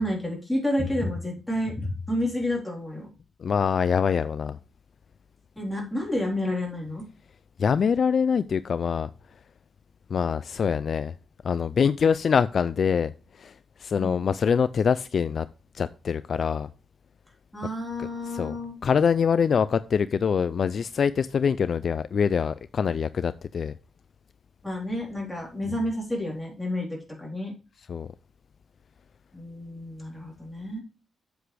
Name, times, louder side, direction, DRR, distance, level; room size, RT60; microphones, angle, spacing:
voice 1, 0.0-3.1 5.6-7.1 13.9-14.2 17.5-18.8 24.6-26.9 27.2-27.5 29.3-30.8, left 1 dB, 5° left, 3.8 m, -30 dB
voice 2, 3.4-4.6 7.6-9.1 10.1-11.2 11.4-15.5 15.7-16.7 18.3-18.5 18.8-23.7 27.9-28.1, left 6 dB, 45° left, 0.3 m, -24 dB
8.1 x 7.9 x 3.3 m
wide cardioid pair, 155°, 0 cm